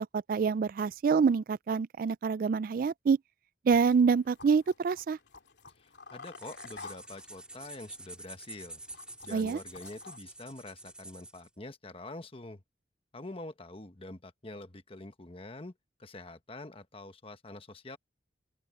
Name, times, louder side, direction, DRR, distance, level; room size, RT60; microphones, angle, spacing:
voice 1, 0.0-3.2 3.7-5.2 9.3-9.6, right 5 dB, 50° right, 0.3 m, -26 dB
sound 1, 3.7-10.2, left 4 dB, 75° left, 2.7 m, -51 dB
voice 2, 5.8-8.8 9.2-12.6 13.1-15.7 16.0-18.0, left 2 dB, 30° left, 1.2 m, -46 dB
sound 2, 6.2-11.5, right 2 dB, 5° right, 2.3 m, -48 dB
open air
head